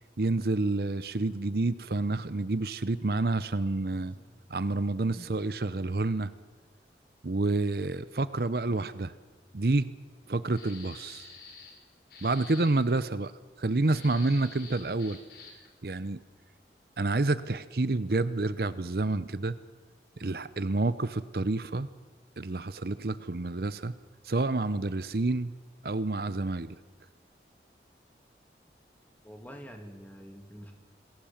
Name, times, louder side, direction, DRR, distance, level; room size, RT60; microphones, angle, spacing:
voice 1, 0.2-4.1 4.5-6.3 7.2-9.1 9.5-9.9 10.3-11.3 12.2-13.3 13.6-15.2 15.8-16.2 17.0-19.6 20.2-21.9 22.4-23.9 24.2-25.5 25.8-26.8, right 2 dB, 60° right, 15 dB, 0.8 m, -29 dB
voice 2, 3.9-4.3 5.1-5.4 29.2-30.7, equal, 10° left, 4 dB, 2.7 m, -47 dB
sound 1, 10.5-11.8 12.1-12.7 13.8-15.7, left 5 dB, 60° left, 5.5 m, -48 dB
27.5 x 20.5 x 7.3 m, 1.4 s
head